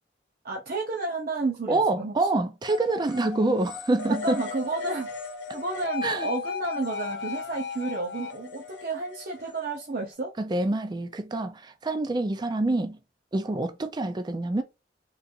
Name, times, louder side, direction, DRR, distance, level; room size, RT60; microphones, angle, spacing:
voice 1, 0.4-2.1 4.1-10.3, right 3 dB, 55° right, 0.7 m, -31 dB
voice 2, 1.7-4.4 6.0-6.3 10.4-13.0 13.3-14.6, right 2 dB, 25° right, 0.4 m, -26 dB
sound 1, 2.6-10.1, left 5 dB, 75° left, 0.8 m, -36 dB
3.8 x 2.5 x 2.7 m
head